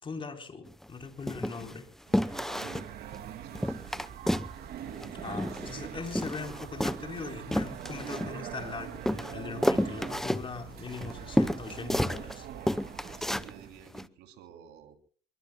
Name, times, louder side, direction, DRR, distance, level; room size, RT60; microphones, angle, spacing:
voice 1, 0.0-1.9 2.2-2.4 5.2-12.5, left 4 dB, 30° left, 5 dB, 3.9 m, -40 dB
sound 1, 0.7-0.9 1.3-1.7 2.1-2.9 3.2-3.3 3.5-4.5 4.8-5.8 6.1-8.6 9.1-12.4 12.7-13.5 13.9-14.1, equal, ahead, 0.8 m, -30 dB
sound 2, 2.1-13.7, right 9 dB, 70° right, 2.5 m, -43 dB
voice 2, 2.6-4.1 11.9-12.0 13.2-15.0, right 9 dB, 90° right, 6 dB, 3.1 m, -52 dB
27.0 x 23.5 x 2.3 m, 0.43 s
cardioid pair, 110°, 17 cm